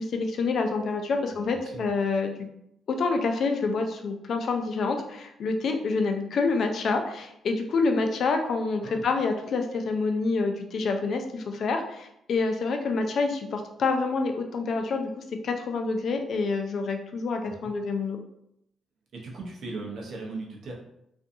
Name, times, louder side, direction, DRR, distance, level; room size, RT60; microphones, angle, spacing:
voice 1, 0.0-2.3 2.9-18.2, left 4 dB, 60° left, 5 dB, 0.4 m, -27 dB
voice 2, 1.2-1.9 8.8-9.0 17.5-17.7 19.1-20.7, right 3 dB, 65° right, -1 dB, 0.7 m, -38 dB
2.5 x 2.3 x 2.6 m, 0.78 s
cardioid pair, 90°, 0 cm